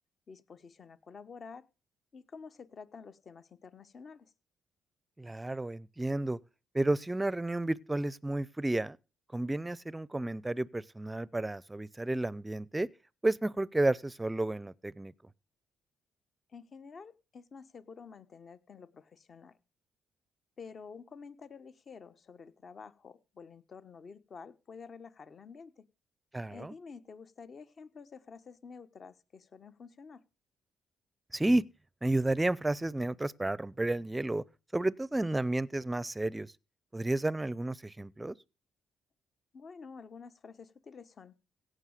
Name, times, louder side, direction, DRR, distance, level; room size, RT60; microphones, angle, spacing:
voice 1, 0.3-1.6 2.1-4.3 16.5-19.6 20.6-25.8 26.5-30.2 39.5-41.4, left 5 dB, 45° left, 1.2 m, -50 dB
voice 2, 5.2-6.4 6.7-9.0 9.3-12.9 13.2-15.1 26.3-26.7 31.3-31.7 32.0-34.4 34.7-36.5 36.9-38.4, right 2 dB, 15° right, 0.6 m, -31 dB
17.0 x 6.5 x 6.6 m
cardioid pair, 90°, 0 cm